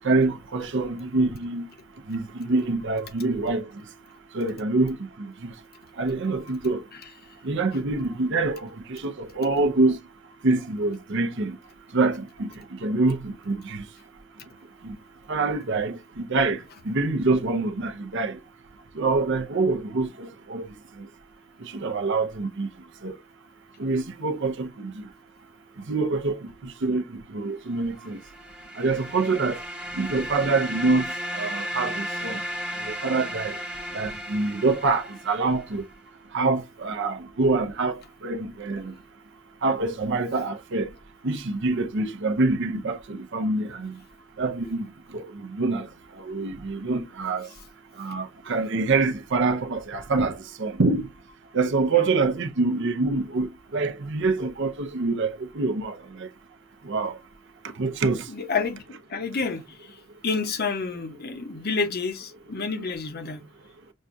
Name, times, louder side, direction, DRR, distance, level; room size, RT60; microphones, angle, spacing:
voice 1, 0.0-1.7 2.1-3.7 4.3-5.5 6.0-6.8 7.4-10.0 10.4-11.6 11.9-13.8 14.8-15.0 15.3-18.4 18.9-20.7 21.0-21.1 21.6-22.7 23.0-23.1 23.8-25.1 25.8-28.2 28.8-29.6 29.9-31.1 31.3-32.4 32.8-33.6 33.9-35.8 36.3-38.9 39.6-40.9 41.2-44.0 44.4-45.9 46.2-47.5 48.0-51.1 51.5-56.3 56.8-57.2 57.6-58.3, right 3 dB, 60° right, 0.6 m, -26 dB
sound 1, 28.0-35.8, equal, 5° right, 0.9 m, -35 dB
voice 2, 58.3-63.4, left 4 dB, 45° left, 0.9 m, -29 dB
6.3 x 2.3 x 2.6 m
head